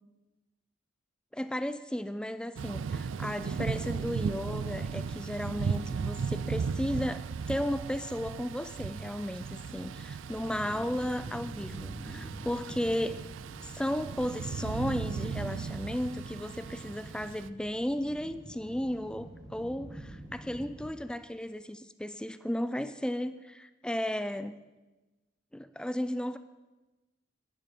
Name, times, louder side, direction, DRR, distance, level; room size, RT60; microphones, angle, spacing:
voice 1, 1.3-13.2 13.6-24.6 25.5-26.4, equal, 5° left, 12 dB, 0.4 m, -34 dB
Thunder / Rain, 2.6-17.5, right 5 dB, 70° right, 0.4 m, -36 dB
sound 1, 10.4-20.9, equal, 20° right, 1.4 m, -48 dB
11.5 x 11.0 x 5.2 m, 1.1 s
head